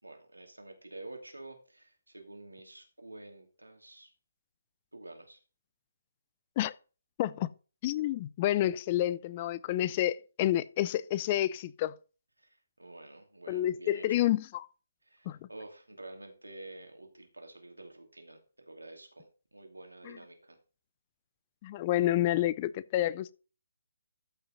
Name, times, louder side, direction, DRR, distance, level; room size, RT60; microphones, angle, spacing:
voice 1, 0.0-4.1 4.9-5.4 12.4-14.3 15.0-20.6, right 2 dB, 85° right, 2.6 m, -49 dB
voice 2, 7.2-7.5 7.8-12.0 13.5-14.7 15.3-15.4 21.6-23.3, left 13 dB, 30° left, 0.5 m, -29 dB
13.5 x 5.7 x 4.0 m
figure-of-eight pair, 140°, 0 cm